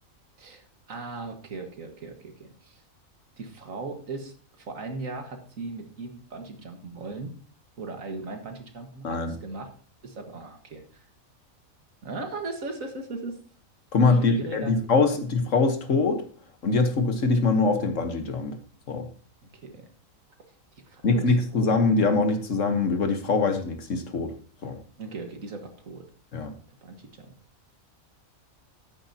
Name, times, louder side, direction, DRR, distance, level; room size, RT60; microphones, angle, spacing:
voice 1, 0.4-2.8 3.4-7.3 7.8-9.7 10.0-11.1 12.0-13.4 14.2-14.7 15.1-15.2 19.5-19.9 20.9-21.7 25.0-26.0 26.8-27.4, right 3 dB, 70° right, 5 dB, 2.0 m, -38 dB
voice 2, 13.9-16.2 16.6-18.6 18.9-19.1 21.0-24.3 24.6-24.8 26.3-26.5, left 3 dB, 65° left, 7 dB, 1.5 m, -23 dB
12.5 x 9.9 x 2.8 m, 0.41 s
omnidirectional pair, 1.4 m